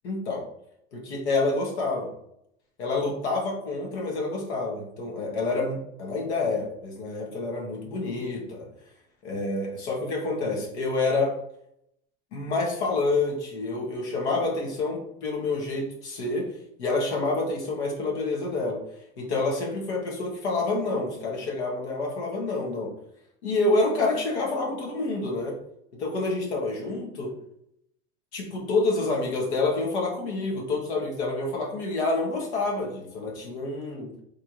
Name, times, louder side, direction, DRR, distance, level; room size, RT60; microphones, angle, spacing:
voice 1, 0.0-0.4 0.9-2.1 2.8-8.7 9.2-11.3 12.3-16.5 16.8-18.8 19.2-22.9 23.4-25.5 26.0-27.3 28.3-34.1, left 3 dB, 85° left, -1 dB, 1.5 m, -28 dB
3.4 x 2.6 x 4.6 m, 0.76 s
supercardioid pair, 130°, 33 cm